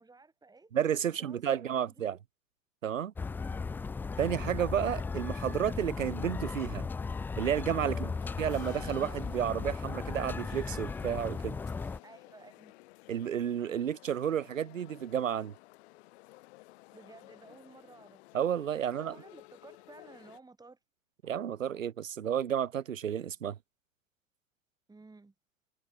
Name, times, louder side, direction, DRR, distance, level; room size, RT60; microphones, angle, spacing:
voice 1, 0.0-0.7 1.0-2.1 3.4-4.0 7.9-8.2 12.0-12.7 16.9-18.3 18.8-20.8 24.9-25.3, right 3 dB, 10° right, 3.6 m, -55 dB
voice 2, 0.7-2.2 2.8-3.1 4.2-6.8 7.4-8.1 8.4-11.6 13.1-15.5 18.3-19.2 21.2-23.6, right 9 dB, 85° right, 0.5 m, -31 dB
sound 1, 3.2-12.0, left 4 dB, 5° left, 0.3 m, -36 dB
sound 2, 8.2-20.4, left 21 dB, 55° left, 6.0 m, -55 dB
figure-of-eight pair, 80°, 38 cm